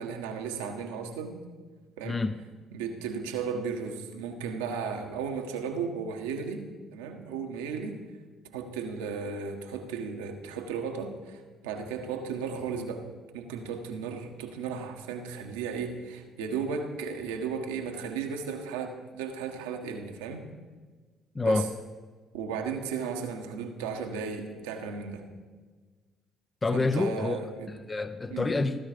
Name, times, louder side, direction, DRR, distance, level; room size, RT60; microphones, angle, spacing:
voice 1, 0.0-1.4 2.0-2.2 2.7-8.0 8.5-13.1 13.3-20.5 21.4-21.7 22.3-25.3 26.7-27.7 28.3-28.5, right 5 dB, 85° right, 4 dB, 1.5 m, -35 dB
voice 2, 2.0-2.4 21.3-21.7 26.6-27.4 27.7-28.9, left 3 dB, 25° left, 11 dB, 0.7 m, -27 dB
16.0 x 12.5 x 5.2 m, 1.4 s
hypercardioid pair, 55°, 0 cm